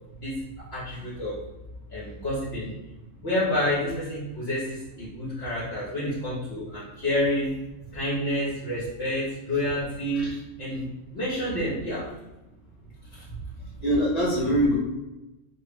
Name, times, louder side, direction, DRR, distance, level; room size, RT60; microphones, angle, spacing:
voice 1, 0.2-1.5 1.9-2.8 3.2-7.5 7.9-12.1 13.1-13.2, left 1 dB, 55° left, -8 dB, 1.0 m, -29 dB
voice 2, 13.8-14.8, equal, 30° left, -4 dB, 1.2 m, -23 dB
3.0 x 2.5 x 3.4 m, 1.0 s
omnidirectional pair, 1.3 m